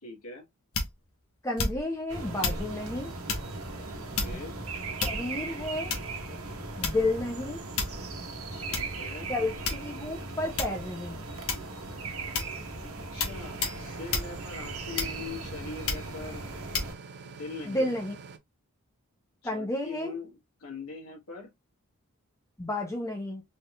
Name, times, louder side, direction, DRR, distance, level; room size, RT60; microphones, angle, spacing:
voice 1, 0.0-0.4 3.9-4.5 8.5-9.3 12.8-16.4 17.2-17.9 19.4-21.5, left 4 dB, 85° left, 1.7 m, -42 dB
sound 1, 0.7-1.1 1.6-2.0 2.4-2.7 3.3-3.5 4.1-4.5 5.0-5.4 5.9-6.2 6.8-7.2 7.8-8.1 8.7-8.9 9.6-10.1 10.6-10.8 11.5-11.8 12.3-12.6 13.2-13.4 13.6-13.8 14.1-14.3 15.0-15.4 15.9-16.1 16.7-16.9, left 4 dB, 70° left, 1.2 m, -31 dB
voice 2, 1.4-3.1 5.0-5.9 6.8-7.6 9.3-11.2 17.7-18.2 19.4-20.1 22.6-23.4, left 2 dB, 15° left, 0.8 m, -31 dB
sound 2, 2.1-16.9, right 3 dB, 75° right, 1.3 m, -38 dB
sound 3, 13.3-18.4, right 5 dB, 50° right, 0.6 m, -46 dB
4.1 x 3.5 x 2.4 m
head